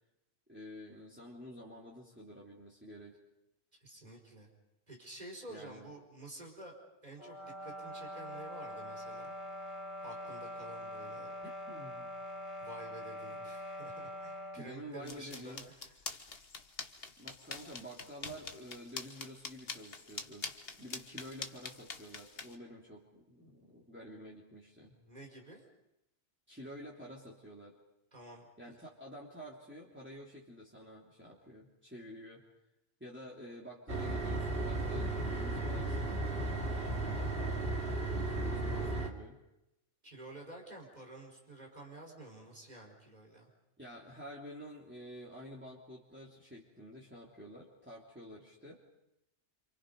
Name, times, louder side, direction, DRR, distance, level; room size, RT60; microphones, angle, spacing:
voice 1, 0.5-3.2 5.5-5.9 11.4-12.1 14.6-15.6 17.2-20.5 20.8-25.0 26.5-27.8 28.6-32.4 33.0-37.3 38.4-39.4 43.8-48.8, equal, 10° right, -5 dB, 3.2 m, -50 dB
voice 2, 3.7-4.5 4.9-6.8 7.0-11.3 12.6-15.9 24.9-25.6 28.1-28.8 40.0-43.5, right 1 dB, 35° right, 1 dB, 5.0 m, -51 dB
sound 1, 7.2-14.7, equal, 25° left, 1.9 m, -44 dB
sound 2, 15.1-22.6, left 4 dB, 55° left, 1.5 m, -45 dB
sound 3, 33.9-39.1, right 2 dB, 50° right, 2.6 m, -35 dB
28.5 x 27.0 x 5.4 m, 0.90 s
omnidirectional pair, 1.2 m